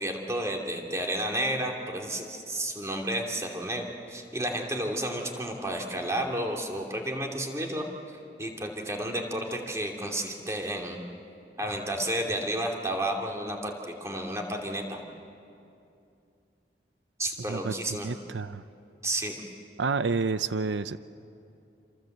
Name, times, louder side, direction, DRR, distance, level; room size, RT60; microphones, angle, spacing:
voice 1, 0.0-7.9 8.4-11.0 11.6-15.0 17.2-18.1 19.0-19.3, right 1 dB, 15° right, 1 dB, 2.8 m, -31 dB
voice 2, 18.0-18.6 19.8-21.0, right 4 dB, 90° right, 13 dB, 0.6 m, -29 dB
28.0 x 26.5 x 8.0 m, 2.6 s
head